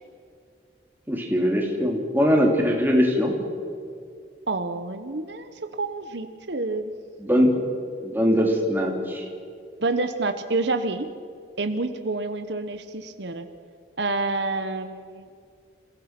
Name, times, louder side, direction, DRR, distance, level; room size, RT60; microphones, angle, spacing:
voice 1, 1.1-3.3 7.2-7.5 8.0-9.2, equal, 10° right, 0 dB, 3.0 m, -21 dB
voice 2, 4.5-6.9 9.8-11.1 11.6-13.4 14.0-15.3, right 3 dB, 70° right, 8 dB, 1.1 m, -28 dB
28.5 x 16.5 x 6.1 m, 2.3 s
head